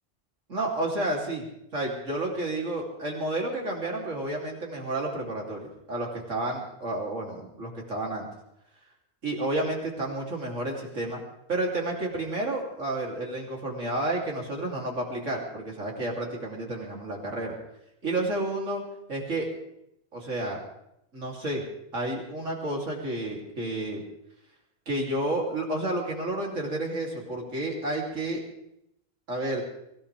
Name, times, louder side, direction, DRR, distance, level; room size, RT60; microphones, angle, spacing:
voice 1, 0.5-1.5 1.7-8.3 9.2-11.2 11.5-17.5 18.0-18.8 19.1-19.5 20.1-20.6 21.1-21.6 21.9-24.0 24.9-28.4 29.3-29.6, right 2 dB, 90° right, -1 dB, 3.7 m, -31 dB
24.0 x 16.5 x 3.5 m, 0.80 s
omnidirectional pair, 1.3 m